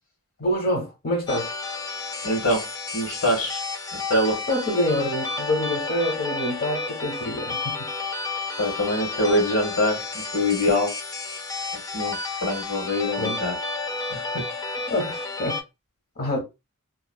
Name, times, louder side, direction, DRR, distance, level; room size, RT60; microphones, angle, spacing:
voice 1, 0.4-1.5 4.5-7.8 13.2-13.4 14.9-15.6 16.2-16.4, left 1 dB, 45° left, 0.9 m, -26 dB
sound 1, 1.3-15.6, left 3 dB, 15° left, 0.3 m, -31 dB
voice 2, 2.2-2.7 2.9-3.6 3.9-4.4 8.6-10.9 11.9-13.6 14.1-14.4, left 1 dB, 70° left, 1.3 m, -24 dB
3.0 x 2.3 x 2.2 m
head